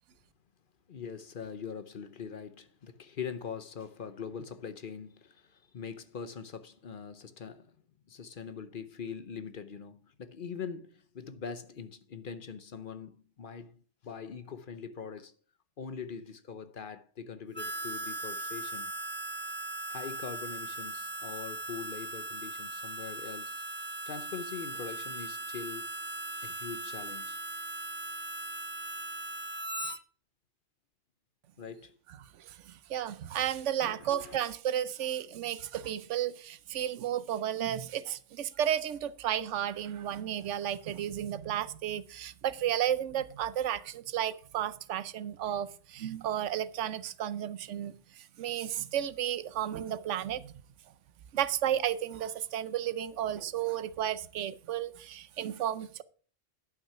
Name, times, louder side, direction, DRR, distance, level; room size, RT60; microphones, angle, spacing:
voice 1, 0.9-7.7 8.1-15.3 15.8-18.9 19.9-23.7 24.1-26.0 26.4-27.4 31.6-32.0 33.8-34.4, left 6 dB, 50° left, 0.9 m, -43 dB
Harmonica, 17.5-30.0, right 2 dB, 15° right, 0.4 m, -39 dB
voice 2, 32.4-50.5 51.3-56.0, right 10 dB, 85° right, 1.0 m, -33 dB
11.0 x 6.1 x 5.7 m
omnidirectional pair, 1.2 m